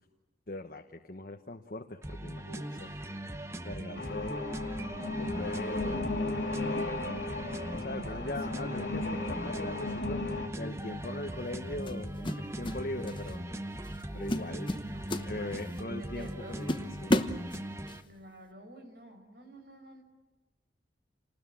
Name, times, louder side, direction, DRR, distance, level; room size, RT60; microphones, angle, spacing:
voice 1, 0.5-2.9 3.6-4.4 5.1-6.5 7.8-10.3 10.6-13.4 14.1-14.7 15.3-17.3, left 1 dB, 50° left, 5 dB, 1.2 m, -40 dB
sound 1, 2.0-18.0, right 1 dB, 15° right, 0.9 m, -40 dB
voice 2, 2.4-3.2 3.8-4.6 7.9-8.4 14.7-16.6 18.0-20.0, right 1 dB, 60° right, 5 dB, 5.3 m, -51 dB
sound 2, 3.9-10.5, left 2 dB, 85° left, 2.9 m, -35 dB
sound 3, 10.5-10.8 11.9-12.8 13.1-13.4 13.8-14.0 14.3-15.8 16.2-16.3 16.7-18.0, left 1 dB, 25° left, 1.0 m, -32 dB
28.5 x 20.0 x 7.7 m, 1.2 s
head